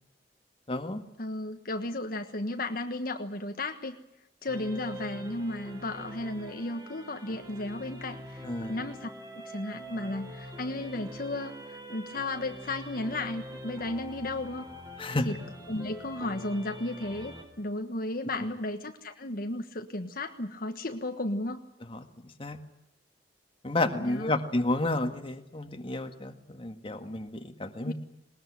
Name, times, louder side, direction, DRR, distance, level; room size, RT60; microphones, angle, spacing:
voice 1, 0.7-1.0 8.4-8.8 15.0-15.3 18.3-18.5 21.9-22.6 23.6-27.9, left 2 dB, 30° left, 7 dB, 1.8 m, -31 dB
voice 2, 1.2-4.0 4.4-14.7 15.2-15.4 15.7-21.6 24.0-24.4 27.8-27.9, left 2 dB, 55° left, 6 dB, 1.4 m, -34 dB
sound 1, 4.5-17.4, equal, 20° right, 4.4 m, -44 dB
20.5 x 20.5 x 9.9 m, 0.80 s
head